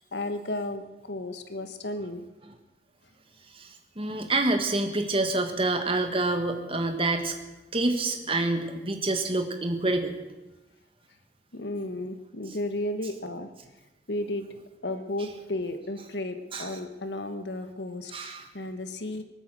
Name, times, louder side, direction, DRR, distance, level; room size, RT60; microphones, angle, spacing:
voice 1, 0.1-2.3 11.5-13.5 14.1-14.5 14.8-19.2, left 1 dB, 80° left, 8 dB, 1.5 m, -33 dB
voice 2, 3.5-7.3 7.7-10.1 16.5-16.7 18.1-18.5, right 2 dB, 30° right, 6 dB, 1.6 m, -27 dB
19.5 x 9.0 x 7.8 m, 1.1 s
head